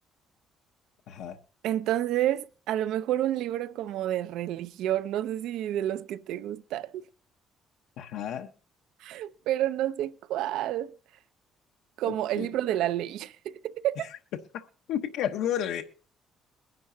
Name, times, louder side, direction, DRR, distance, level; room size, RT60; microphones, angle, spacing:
voice 1, 1.1-1.4 8.0-8.5 12.0-12.5 14.0-14.1 14.5-15.8, left 10 dB, 80° left, 1.0 m, -32 dB
voice 2, 1.6-7.1 9.0-11.0 12.0-14.1, right 12 dB, 75° right, 0.6 m, -29 dB
22.5 x 10.5 x 2.7 m
cardioid pair, 175°, 0 cm